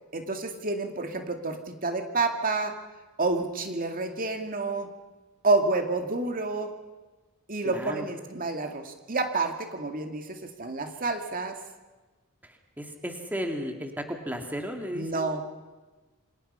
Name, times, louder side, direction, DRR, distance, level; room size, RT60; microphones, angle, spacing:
voice 1, 0.1-2.8 3.2-4.9 5.4-6.7 7.5-11.6 14.9-15.4, right 3 dB, 40° right, 5 dB, 2.3 m, -29 dB
voice 2, 7.6-8.1 12.4-15.3, equal, 10° right, 3 dB, 2.4 m, -34 dB
28.0 x 26.0 x 5.7 m, 1.2 s
head